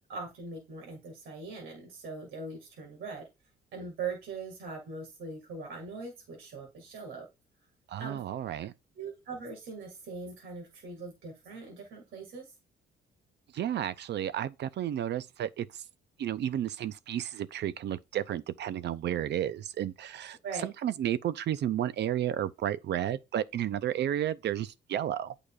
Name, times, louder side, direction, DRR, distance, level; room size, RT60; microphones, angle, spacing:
voice 1, 0.1-3.3 3.7-7.3 8.0-8.2 9.0-12.5 20.4-20.7, right 4 dB, 80° right, 2.0 m, -41 dB
voice 2, 7.9-8.7 13.5-15.8 16.2-25.3, right 11 dB, 60° right, 0.5 m, -32 dB
8.6 x 4.8 x 2.4 m
cardioid pair, 90°, 20 cm